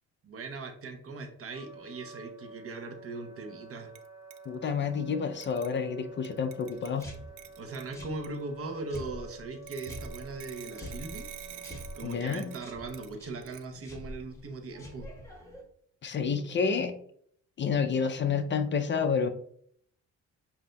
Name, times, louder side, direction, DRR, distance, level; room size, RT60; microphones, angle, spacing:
voice 1, 0.2-3.9 7.6-11.3 11.9-15.1, right 3 dB, 50° right, 5 dB, 0.9 m, -39 dB
Wind instrument woodwind instrument, 1.5-13.1, right 4 dB, 10° right, 1.7 m, -49 dB
sound 1, 3.9-4.1 4.3-4.4 5.4-5.8 6.2-8.3 8.9-9.0 9.7-13.1 13.4-13.6, right 13 dB, 90° right, 0.5 m, -48 dB
voice 2, 4.5-7.1 12.0-12.5 16.0-17.0 17.6-19.3, left 6 dB, 40° left, 8 dB, 0.5 m, -29 dB
sound 2, 6.7-15.6, left 1 dB, 10° left, 1.5 m, -47 dB
7.6 x 2.7 x 2.2 m, 0.64 s
cardioid pair, 90°, 30 cm